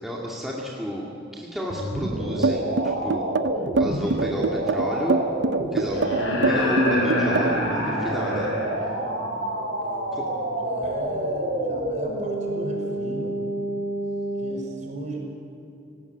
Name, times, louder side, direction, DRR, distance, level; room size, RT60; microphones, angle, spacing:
voice 1, 0.0-2.7 3.0-3.4 3.7-5.2 5.7-8.5 10.1-10.2, equal, ahead, -4 dB, 2.3 m, -32 dB
sound 1, 1.7-14.5, right 1 dB, 80° right, 4.7 m, -28 dB
sound 2, 2.4-7.7, right 3 dB, 60° right, 0.7 m, -24 dB
sound 3, 4.0-4.1 5.9-8.8 10.8-10.9, left 1 dB, 75° left, 7.4 m, -26 dB
voice 2, 8.8-13.4 14.4-15.2, right 1 dB, 35° right, 1 dB, 5.1 m, -36 dB
29.5 x 18.0 x 8.2 m, 2.6 s
head